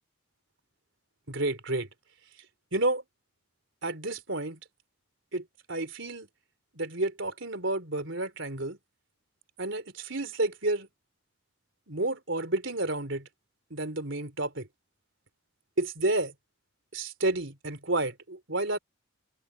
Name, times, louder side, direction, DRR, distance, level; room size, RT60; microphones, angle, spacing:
voice 1, 1.3-1.9 2.7-3.0 3.8-4.6 5.3-6.3 6.7-8.8 9.6-10.9 11.9-13.3 13.7-14.7 15.8-16.3 16.9-18.8, right 2 dB, 65° right, 3.8 m, -30 dB
head